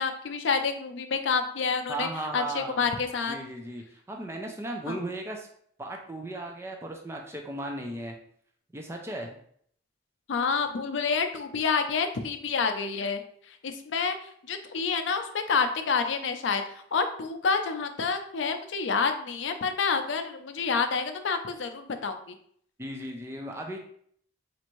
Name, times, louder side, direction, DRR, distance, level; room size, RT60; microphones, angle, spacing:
voice 1, 0.0-2.1 2.3-3.4 4.9-5.0 10.3-13.2 13.6-14.1 14.5-16.6 16.9-22.2, left 5 dB, 80° left, 7 dB, 0.5 m, -28 dB
voice 2, 1.9-2.9 3.3-5.5 5.8-8.2 8.7-9.4 22.8-23.9, right 1 dB, 15° right, 1 dB, 0.4 m, -36 dB
4.3 x 2.6 x 3.0 m, 0.63 s
head